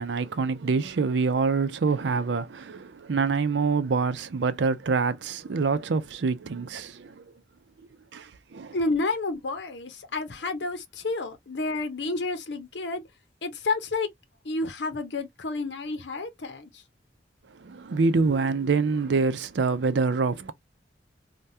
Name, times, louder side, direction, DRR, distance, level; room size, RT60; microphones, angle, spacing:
voice 1, 0.0-7.2 8.1-8.2 8.5-8.8 17.6-20.5, right 4 dB, 85° right, 0.5 m, -26 dB
voice 2, 8.7-13.0 13.4-14.1 14.4-16.8, left 3 dB, 75° left, 0.8 m, -30 dB
3.4 x 2.2 x 2.7 m
head